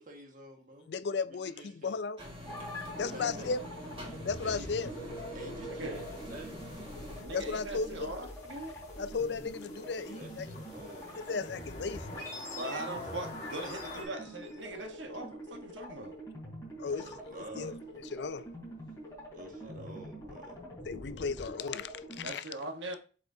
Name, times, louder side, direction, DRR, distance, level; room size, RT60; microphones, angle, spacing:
voice 1, 0.0-0.9 1.3-2.0 3.0-3.5 4.4-4.7 5.3-6.8 9.7-11.3 16.8-17.8 19.3-20.6, right 1 dB, 45° right, 1.6 m, -49 dB
voice 2, 0.9-2.2 2.9-3.6 4.2-4.9 7.3-8.1 9.0-10.5 11.3-12.1 16.8-17.1 17.6-17.7 18.1-18.5 20.9-22.4, left 4 dB, 70° left, 0.4 m, -35 dB
sound 1, 2.2-7.2, left 1 dB, 30° right, 1.6 m, -46 dB
sound 2, 2.5-22.3, equal, 15° left, 3.4 m, -44 dB
voice 3, 5.6-6.1 7.2-8.7 12.6-16.2 19.6-19.9 22.2-23.0, right 2 dB, 90° right, 1.2 m, -41 dB
sound 3, 5.9-14.0, left 2 dB, 40° left, 1.8 m, -48 dB
8.0 x 4.8 x 2.7 m
head